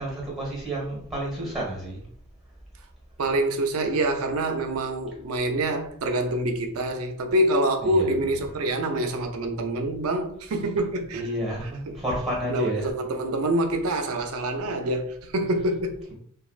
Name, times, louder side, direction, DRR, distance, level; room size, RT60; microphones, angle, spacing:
voice 1, 0.0-2.0 7.8-8.1 11.1-12.9, right 1 dB, ahead, 1.3 m, -30 dB
voice 2, 3.2-11.3 11.6-12.0 12.5-16.0, right 1 dB, 85° right, 0.5 m, -26 dB
3.2 x 2.3 x 2.4 m
head